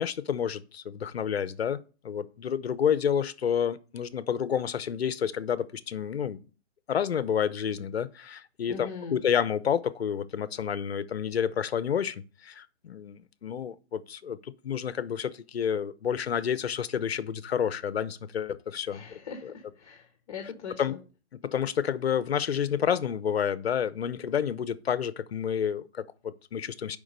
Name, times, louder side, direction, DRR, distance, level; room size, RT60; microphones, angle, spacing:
voice 1, 0.0-6.5 6.9-19.1 19.4-19.5 20.8-20.9 21.4-27.0, left 8 dB, 60° left, 0.8 m, -29 dB
voice 2, 8.7-9.2 18.9-21.0, left 5 dB, 35° left, 1.4 m, -41 dB
7.2 x 5.2 x 6.6 m
hypercardioid pair, 170°, 34 cm